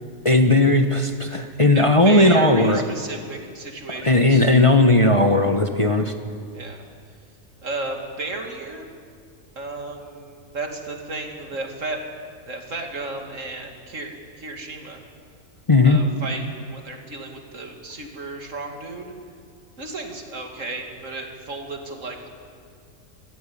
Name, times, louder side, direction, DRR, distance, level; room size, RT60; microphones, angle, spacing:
voice 1, 0.2-2.8 4.0-6.1 15.7-16.0, left 2 dB, 25° left, 5 dB, 1.0 m, -16 dB
voice 2, 1.7-4.5 6.5-6.8 7.6-8.9 9.6-12.0 12.5-15.0 15.8-19.1 19.8-22.3, right 2 dB, 70° right, 3 dB, 2.7 m, -33 dB
24.0 x 15.0 x 8.6 m, 2.2 s
omnidirectional pair, 1.4 m